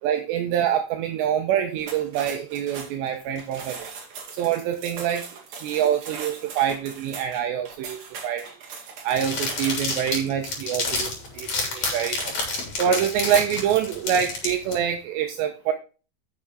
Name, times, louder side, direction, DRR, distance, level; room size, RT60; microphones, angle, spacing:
voice 1, 0.0-3.9 4.3-5.2 5.6-8.5 9.0-12.3 12.8-15.7, right 9 dB, 80° right, 5 dB, 2.6 m, -25 dB
sound 1, 1.8-9.9, right 5 dB, 50° right, 2.2 m, -40 dB
sound 2, 9.1-14.7, left 3 dB, 40° left, 3.9 m, -29 dB
8.6 x 6.8 x 4.7 m, 0.34 s
omnidirectional pair, 5.8 m